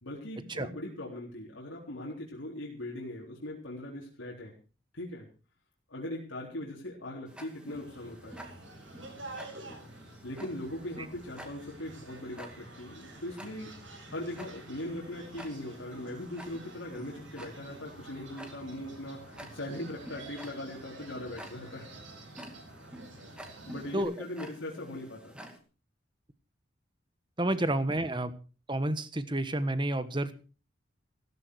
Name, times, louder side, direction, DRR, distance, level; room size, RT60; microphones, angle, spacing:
voice 1, 0.0-4.5 4.9-5.3 5.9-8.4 10.2-13.7 14.1-21.9 23.6-25.4 27.5-27.6, left 1 dB, 85° left, -3 dB, 3.9 m, -40 dB
Tick-tock, 7.3-25.6, equal, 5° right, 2.3 m, -50 dB
sound 1, 7.7-24.0, right 2 dB, 80° right, 7.5 m, -49 dB
voice 2, 27.4-28.3 28.7-30.4, right 1 dB, 25° right, 12 dB, 1.3 m, -30 dB
16.0 x 14.0 x 4.8 m, 0.36 s
head